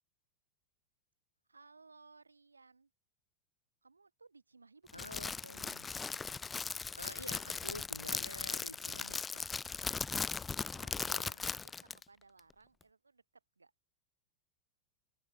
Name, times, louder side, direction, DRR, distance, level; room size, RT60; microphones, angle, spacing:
voice 1, 1.5-2.9 3.8-5.6 10.7-13.7, right 4 dB, 80° right, 5.4 m, -62 dB
voice 2, 4.9-5.9 7.0-9.5 11.1-11.5, left 1 dB, 85° left, 1.5 m, -49 dB
Crackle, 4.9-12.0, left 5 dB, 15° left, 0.4 m, -38 dB
figure-of-eight pair, 90°, 0 cm